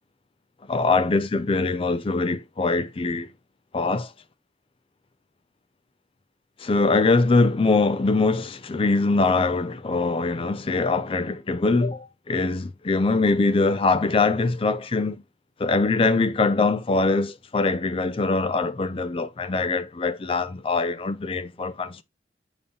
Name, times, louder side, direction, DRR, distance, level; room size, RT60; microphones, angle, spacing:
voice 1, 0.7-3.3 3.7-4.1 6.6-15.2 15.6-22.0, left 3 dB, 30° left, 0.4 m, -23 dB
6.9 x 5.0 x 2.7 m
head